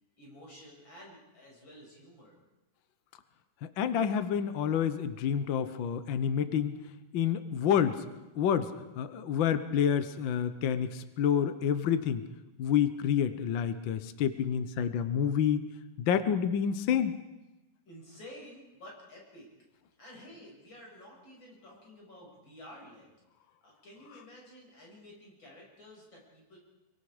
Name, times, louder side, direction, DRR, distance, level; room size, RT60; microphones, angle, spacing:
voice 1, 0.2-2.4 17.9-19.5 20.0-23.1 23.6-26.6, left 1 dB, 35° left, -2 dB, 7.2 m, -51 dB
voice 2, 3.6-6.7 7.1-8.0 8.3-12.2 12.6-15.7 16.0-17.2, left 8 dB, 90° left, 11 dB, 1.0 m, -28 dB
26.0 x 23.5 x 5.0 m, 1.0 s
omnidirectional pair, 3.6 m